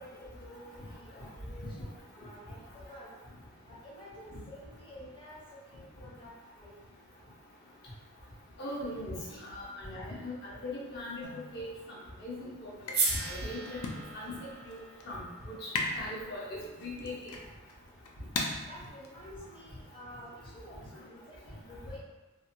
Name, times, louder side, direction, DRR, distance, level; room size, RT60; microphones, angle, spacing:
voice 1, 0.0-3.2 3.7-6.7 9.3-9.4 18.6-22.0, equal, 25° left, -7 dB, 0.8 m, -50 dB
voice 2, 8.6-9.1 9.5-11.7 12.2-12.7 13.1-13.8 14.1-14.3 14.6-14.8 15.0-15.3 15.6-17.2, left 1 dB, 50° left, -6 dB, 0.8 m, -39 dB
sound 1, 11.2-20.0, left 3 dB, 70° left, 0.4 m, -41 dB
sound 2, 12.9-17.1, right 3 dB, 45° right, 0.5 m, -37 dB
2.6 x 2.2 x 2.7 m, 1.1 s
head